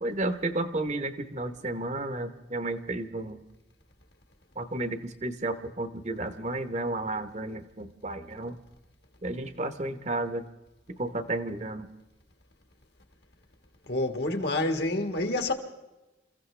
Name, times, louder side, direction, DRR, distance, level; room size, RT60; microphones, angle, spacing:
voice 1, 0.0-3.4 4.6-8.6 9.2-10.4 11.0-11.9, right 2 dB, 35° right, 1.0 m, -32 dB
voice 2, 13.9-15.5, left 2 dB, 55° left, 1.7 m, -28 dB
27.5 x 15.5 x 3.3 m
head